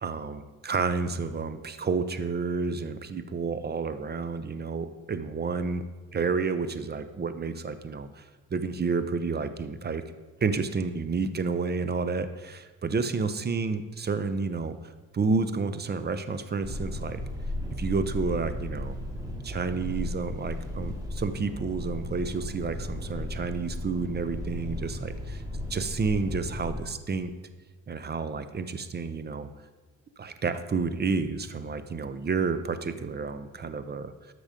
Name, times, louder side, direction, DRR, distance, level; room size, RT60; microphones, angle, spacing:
voice 1, 0.0-5.8 6.1-8.2 8.5-10.0 10.4-14.8 15.1-17.2 17.8-19.0 19.4-25.4 25.7-27.3 27.9-29.5 30.2-34.1, right 4 dB, 35° right, 11 dB, 0.8 m, -30 dB
sound 1, 16.6-26.8, left 1 dB, 10° right, 2.7 m, -35 dB
13.0 x 6.2 x 5.2 m, 1.3 s
cardioid pair, 90°, 30 cm